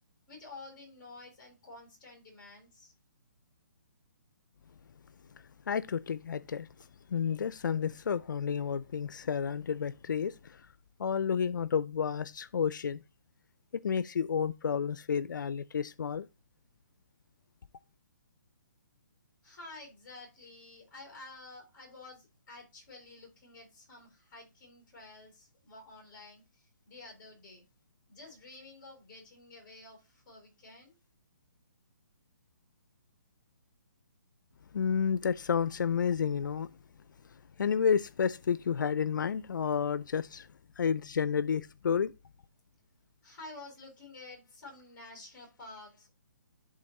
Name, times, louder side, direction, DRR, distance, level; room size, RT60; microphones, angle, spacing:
voice 1, 0.3-2.9 19.4-27.6 28.1-30.9 43.2-46.1, left 2 dB, 15° left, 3.1 m, -50 dB
voice 2, 5.7-6.7 7.1-10.6 11.0-13.0 13.7-16.3 34.7-36.7 37.6-40.5 40.8-42.1, left 7 dB, 85° left, 0.4 m, -30 dB
11.0 x 3.8 x 4.0 m
hypercardioid pair, 175°, 10 cm